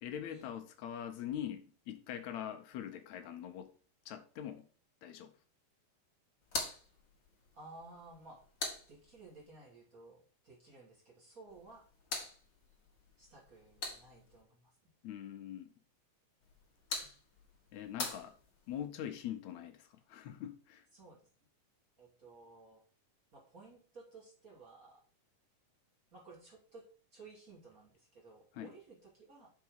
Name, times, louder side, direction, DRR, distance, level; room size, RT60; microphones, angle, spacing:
voice 1, 0.0-3.7 4.1-4.7 5.0-5.3 15.0-15.7 17.7-18.3 18.7-20.8 28.5-28.7, left 10 dB, 70° left, 1.9 m, -43 dB
sound 1, 6.4-9.5 11.5-14.4 16.4-18.9, left 3 dB, 45° left, 1.5 m, -44 dB
voice 2, 7.5-8.4 8.9-11.8 13.2-14.9 20.9-21.2 22.0-22.8 23.3-25.0 26.1-26.8 27.1-29.5, right 3 dB, 25° right, 2.6 m, -56 dB
6.7 x 4.9 x 6.3 m
omnidirectional pair, 3.9 m